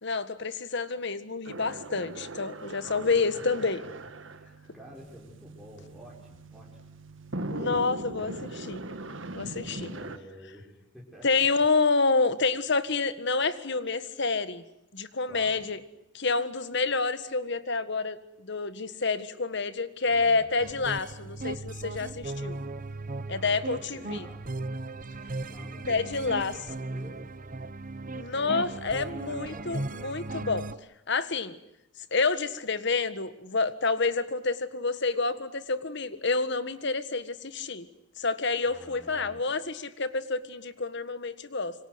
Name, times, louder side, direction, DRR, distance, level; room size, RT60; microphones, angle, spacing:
voice 1, 0.0-3.8 7.5-8.8 9.3-9.9 11.2-14.6 14.9-15.8 16.1-22.6 23.3-24.3 25.9-26.6 28.1-30.6 31.1-31.6 32.1-37.9 38.2-41.7, left 4 dB, 65° left, 13 dB, 1.7 m, -28 dB
sound 1, 1.4-10.2, right 2 dB, 75° right, 1.8 m, -40 dB
voice 2, 3.3-3.9 4.3-6.7 7.5-8.1 9.7-11.3 15.3-15.6 20.1-20.5 23.2-24.4 25.4-27.2 28.3-29.0 29.3-29.9 38.6-39.4, equal, ahead, -5 dB, 5.4 m, -49 dB
sound 2, 20.6-30.8, right 2 dB, 45° right, 1.0 m, -37 dB
27.0 x 24.5 x 8.0 m, 0.84 s
head